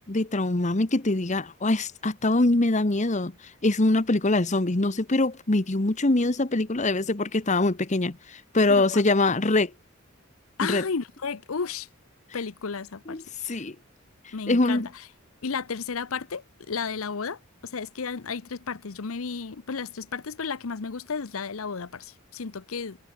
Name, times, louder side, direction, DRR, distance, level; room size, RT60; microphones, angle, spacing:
voice 1, 0.1-3.3 3.6-9.7 10.6-10.8 13.1-13.7 14.5-14.9, left 2 dB, 35° left, 1.1 m, -23 dB
voice 2, 8.7-9.4 10.6-11.9 12.3-13.6 14.3-15.1 15.4-23.0, left 5 dB, 75° left, 0.8 m, -33 dB
head